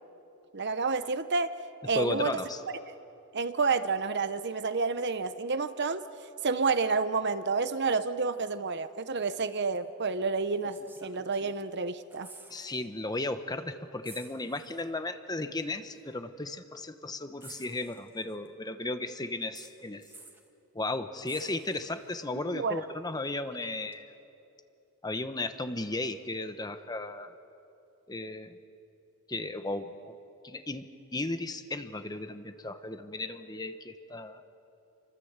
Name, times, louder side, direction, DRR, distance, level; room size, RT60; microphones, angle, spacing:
voice 1, 0.5-1.5 1.8-2.4 3.3-6.0 6.4-12.3 22.5-22.8, right 4 dB, 50° right, 11 dB, 0.9 m, -29 dB
voice 2, 1.9-2.6 12.5-20.0 20.7-24.1 25.0-27.3 28.1-28.6 29.3-30.2 30.4-34.4, left 2 dB, 15° left, 9 dB, 1.0 m, -35 dB
sound 1, 9.7-9.9 10.6-11.7 12.0-12.8 13.1-13.3 14.0-14.9 15.9-16.0 17.4-18.5 19.5-20.5 21.3-22.2 23.9-24.0, right 2 dB, 10° right, 1.9 m, -52 dB
28.5 x 25.0 x 8.1 m, 2.8 s
head